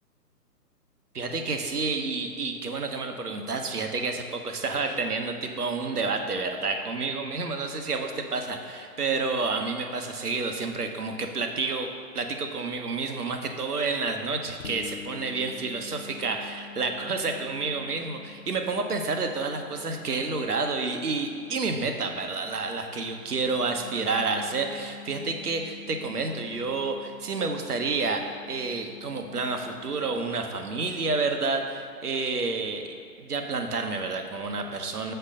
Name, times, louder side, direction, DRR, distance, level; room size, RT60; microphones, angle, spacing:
voice 1, 1.1-11.9 12.1-32.8 33.2-35.1, right 3 dB, 65° right, 4 dB, 1.1 m, -29 dB
sound 1, 14.6-32.1, left 5 dB, 55° left, 0.5 m, -48 dB
7.0 x 4.5 x 6.5 m, 2.4 s
figure-of-eight pair, 135°, 48 cm